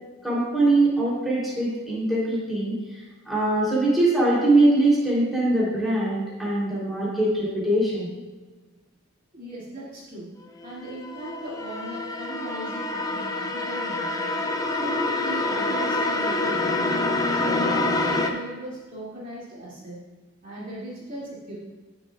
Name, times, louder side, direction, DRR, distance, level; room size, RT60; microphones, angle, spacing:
voice 1, 0.2-8.2, right 2 dB, ahead, -8 dB, 3.2 m, -22 dB
voice 2, 9.3-10.3 10.6-14.4 14.7-16.9 17.3-20.0 20.4-21.6, right 1 dB, 35° right, -8 dB, 2.6 m, -37 dB
sound 1, 10.6-18.3, left 2 dB, 15° left, 0.6 m, -26 dB
17.0 x 6.9 x 2.4 m, 1.2 s
head